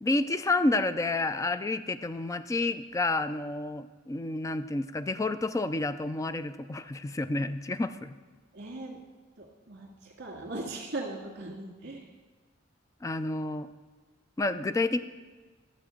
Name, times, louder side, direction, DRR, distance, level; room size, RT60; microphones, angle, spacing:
voice 1, 0.0-8.1 13.0-13.7 14.4-15.0, left 2 dB, 15° left, 12 dB, 0.3 m, -29 dB
voice 2, 8.5-9.0 9.4-12.0, right 2 dB, 60° right, -1 dB, 2.0 m, -39 dB
11.5 x 7.3 x 4.4 m, 1.3 s
head